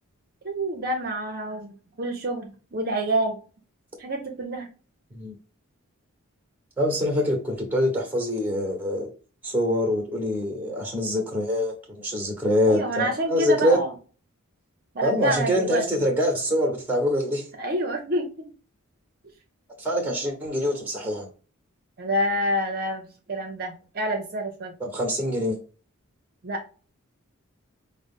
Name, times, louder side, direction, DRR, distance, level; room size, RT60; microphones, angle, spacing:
voice 1, 0.4-3.4 4.0-4.7 12.7-13.9 14.9-15.8 17.6-18.5 22.0-24.7 26.4-26.6, right 1 dB, 45° right, 0.6 m, -28 dB
voice 2, 6.8-9.1 9.4-13.8 15.0-17.5 19.8-21.3 24.8-25.6, equal, 10° right, 1.1 m, -25 dB
5.0 x 2.0 x 3.6 m
head